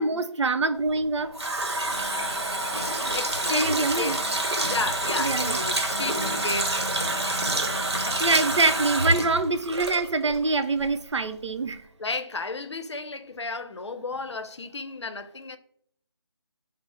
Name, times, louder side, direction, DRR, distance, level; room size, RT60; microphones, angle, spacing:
voice 1, 0.0-1.4 3.5-4.2 5.2-5.6 8.0-11.8, right 3 dB, 85° right, 0.5 m, -25 dB
Water tap faucet, 0.9-10.5 10.8-10.9, right 1 dB, 65° right, 0.9 m, -27 dB
voice 2, 3.1-4.2 4.6-6.8 8.0-8.2 12.0-15.6, left 3 dB, 75° left, 0.6 m, -33 dB
4.7 x 2.0 x 4.2 m
figure-of-eight pair, 175°, 15 cm